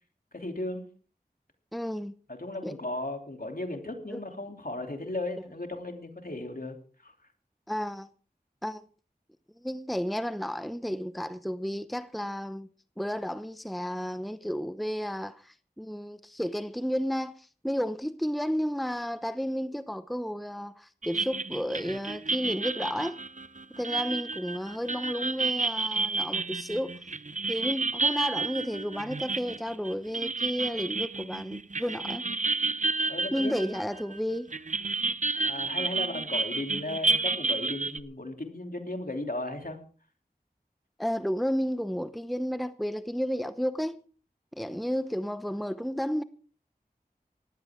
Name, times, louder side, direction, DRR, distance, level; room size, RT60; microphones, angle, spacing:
voice 1, 0.3-0.9 2.3-7.1 33.1-33.6 35.3-39.8, left 2 dB, 60° left, 3.0 m, -36 dB
voice 2, 1.7-2.1 2.6-2.7 4.1-4.2 5.4-5.5 7.7-8.1 8.6-8.8 9.6-12.7 13.0-23.2 23.8-27.0 27.5-32.3 33.3-34.5 41.0-44.0 44.6-46.2, equal, ahead, 0.8 m, -32 dB
sound 1, 21.0-34.2 34.5-38.0, right 3 dB, 50° right, 0.7 m, -31 dB
19.0 x 15.0 x 3.6 m
wide cardioid pair, 40°, 16 cm